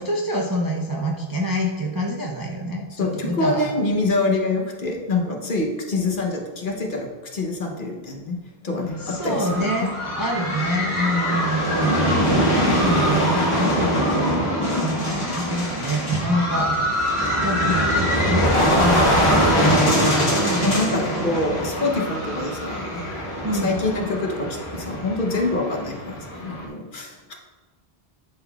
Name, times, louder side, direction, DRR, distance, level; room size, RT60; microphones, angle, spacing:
voice 1, 0.0-3.7 9.0-14.5 14.8-16.8 17.4-19.9 20.4-20.7 23.4-23.7, equal, 30° right, -1 dB, 0.4 m, -26 dB
voice 2, 3.0-8.4 8.6-9.9 20.6-27.3, left 2 dB, 55° left, 1 dB, 1.0 m, -26 dB
sound 1, 9.0-26.6, equal, 30° left, 1.4 m, -22 dB
11.0 x 3.9 x 2.3 m, 1.3 s
omnidirectional pair, 1.1 m